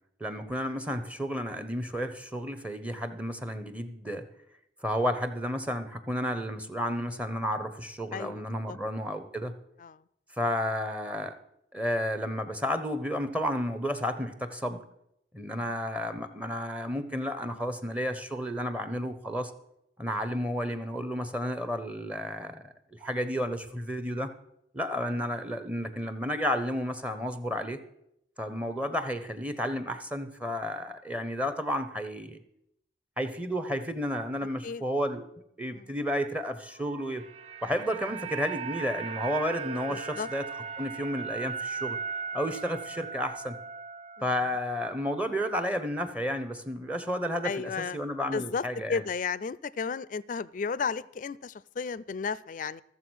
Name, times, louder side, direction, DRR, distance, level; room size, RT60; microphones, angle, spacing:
voice 1, 0.2-4.3 4.8-9.6 10.4-11.4 11.7-14.8 15.3-19.5 20.0-24.3 24.7-27.8 28.4-32.4 33.2-35.2 35.6-37.3 37.6-40.5 40.8-42.0 42.3-43.6 44.2-49.0, equal, 5° right, 11 dB, 0.8 m, -32 dB
voice 2, 8.1-8.8 9.8-10.0 15.5-15.7 34.6-34.8 35.7-35.9 39.9-40.3 44.2-44.3 47.4-48.0 48.3-52.8, left 5 dB, 45° left, 20 dB, 0.4 m, -34 dB
sound 1, 36.8-45.1 45.4-45.6, right 6 dB, 35° right, 0.4 m, -38 dB
14.0 x 7.3 x 6.2 m, 0.78 s
head